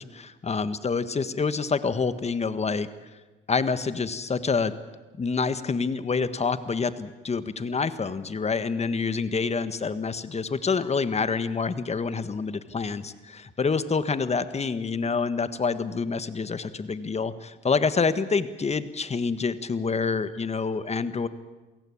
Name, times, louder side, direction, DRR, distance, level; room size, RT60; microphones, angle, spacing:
voice 1, 0.0-2.9 3.5-4.7 5.2-21.3, left 5 dB, 35° left, 13 dB, 1.6 m, -27 dB
28.0 x 17.0 x 8.7 m, 1.2 s
cardioid pair, 90°, 20 cm